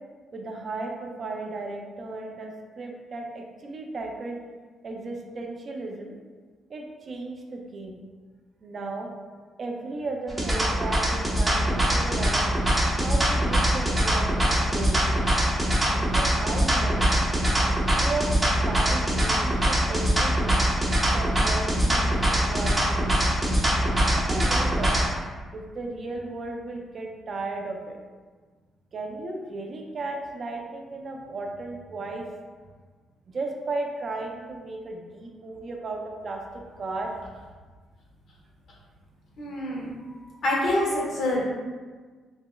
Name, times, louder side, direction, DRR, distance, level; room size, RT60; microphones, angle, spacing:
voice 1, 0.3-4.4 4.8-6.2 6.7-8.0 8.6-9.1 9.6-12.4 13.0-15.1 15.9-17.0 18.0-18.3 18.6-20.6 21.1-23.2 24.1-25.0 25.5-28.0 28.9-32.3 33.3-36.4 36.8-37.1, right 3 dB, 45° right, 1 dB, 0.4 m, -35 dB
sound 1, 10.3-25.1, right 1 dB, 20° right, 0.9 m, -23 dB
voice 2, 39.4-39.9 40.4-41.4, left 1 dB, 60° left, -3 dB, 1.0 m, -26 dB
4.8 x 2.1 x 2.2 m, 1.4 s
cardioid pair, 90°, 0 cm